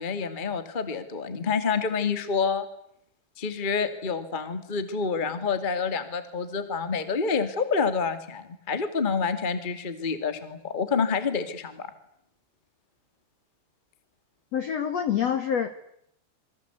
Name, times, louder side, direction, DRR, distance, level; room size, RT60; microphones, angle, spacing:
voice 1, 0.0-2.6 3.4-11.9, left 5 dB, 30° left, 9 dB, 0.9 m, -28 dB
voice 2, 14.5-15.8, left 8 dB, 70° left, 9 dB, 1.6 m, -26 dB
28.0 x 24.0 x 8.3 m, 0.74 s
omnidirectional pair, 5.5 m